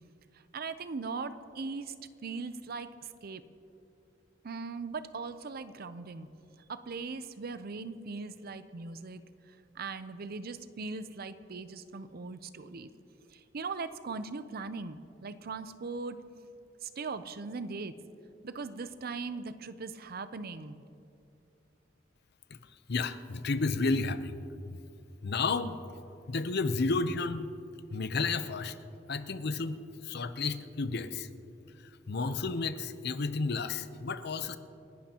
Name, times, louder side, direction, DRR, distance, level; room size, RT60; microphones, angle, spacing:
voice 1, 0.3-1.9 2.2-3.4 4.4-6.3 6.7-12.9 13.3-16.2 16.8-18.0 18.4-20.8, right 4 dB, 55° right, 12 dB, 0.6 m, -40 dB
voice 2, 22.9-24.4 24.7-24.8 25.2-25.8 26.3-27.5 27.9-28.7 29.1-31.3 32.1-34.6, left 3 dB, 60° left, 11 dB, 0.7 m, -31 dB
29.0 x 11.5 x 2.9 m, 2.7 s
head